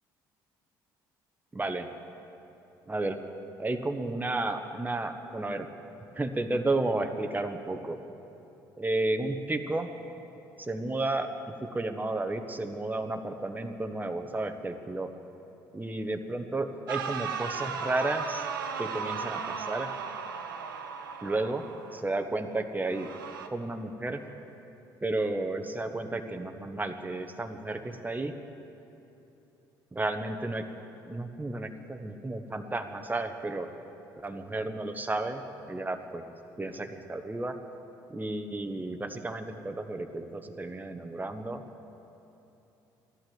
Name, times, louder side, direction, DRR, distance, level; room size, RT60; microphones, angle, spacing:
voice 1, 1.5-1.9 2.9-3.2 3.6-5.7 6.1-8.0 8.8-9.9 10.6-11.3 11.6-15.1 15.7-18.5 18.8-19.9 21.2-21.6 21.9-23.1 23.5-24.2 25.0-28.3 29.9-30.6 31.0-33.7 34.2-36.3 36.6-37.5 38.1-41.6, right 2 dB, 15° right, 6 dB, 1.2 m, -32 dB
sound 1, 16.9-22.0 22.9-23.5, right 6 dB, 90° right, 0.7 m, -36 dB
14.5 x 11.5 x 7.9 m, 3.0 s
hypercardioid pair, 55°, 11 cm